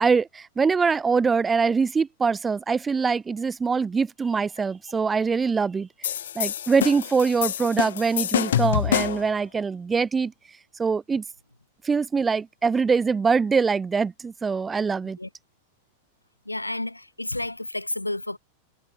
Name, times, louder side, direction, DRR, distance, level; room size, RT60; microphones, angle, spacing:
voice 1, 0.0-5.9 6.4-10.3 10.8-11.2 11.8-15.2, right 5 dB, 15° right, 0.6 m, -23 dB
sound 1, 6.0-9.3, left 10 dB, 60° left, 0.4 m, -26 dB
voice 2, 16.5-18.4, left 1 dB, 85° left, 1.7 m, -31 dB
figure-of-eight pair, 90°, 0 cm